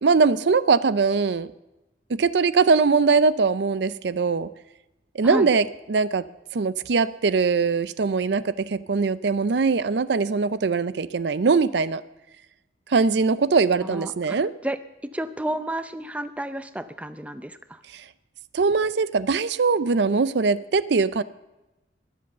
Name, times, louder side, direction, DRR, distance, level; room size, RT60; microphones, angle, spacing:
voice 1, 0.0-1.5 2.1-4.5 5.1-6.2 6.5-12.0 12.9-14.5 17.9-18.0 18.5-21.2, right 4 dB, 65° right, 16 dB, 0.5 m, -21 dB
voice 2, 13.8-17.8, right 1 dB, 5° right, 12 dB, 0.5 m, -32 dB
21.5 x 7.8 x 6.7 m, 1.0 s
head